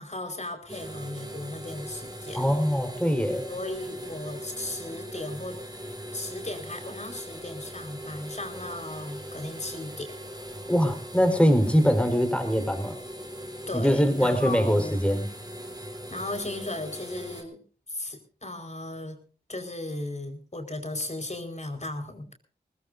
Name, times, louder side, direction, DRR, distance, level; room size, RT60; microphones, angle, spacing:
voice 1, 0.0-2.5 3.4-5.6 6.1-10.1 13.7-15.0 16.1-17.6 17.9-19.2 19.5-22.3, left 2 dB, 45° left, 6 dB, 4.8 m, -36 dB
sound 1, 0.7-17.4, equal, 25° right, 3.5 m, -40 dB
voice 2, 2.3-3.5 10.7-13.0 13.7-15.3, equal, 5° left, 6 dB, 4.3 m, -23 dB
22.5 x 20.0 x 2.7 m, 0.38 s
wide cardioid pair, 60°, 17 cm